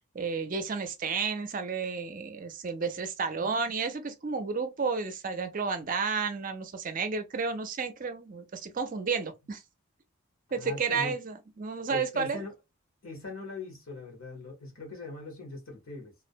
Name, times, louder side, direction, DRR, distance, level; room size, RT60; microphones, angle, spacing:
voice 1, 0.1-9.6 10.5-12.4, right 5 dB, 40° right, 0.4 m, -32 dB
voice 2, 10.5-11.2 11.9-12.5 13.0-16.1, left 3 dB, 70° left, 1.0 m, -41 dB
2.4 x 2.1 x 2.5 m
head